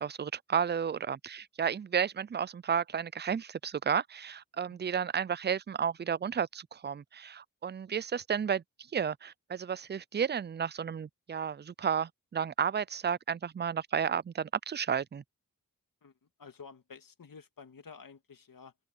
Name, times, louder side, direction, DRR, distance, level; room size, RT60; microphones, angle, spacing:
voice 1, 0.0-8.6 8.9-15.2, right 7 dB, 30° right, 0.4 m, -32 dB
voice 2, 16.0-18.7, left 5 dB, 70° left, 2.0 m, -51 dB
open air
cardioid pair, 50°, 35 cm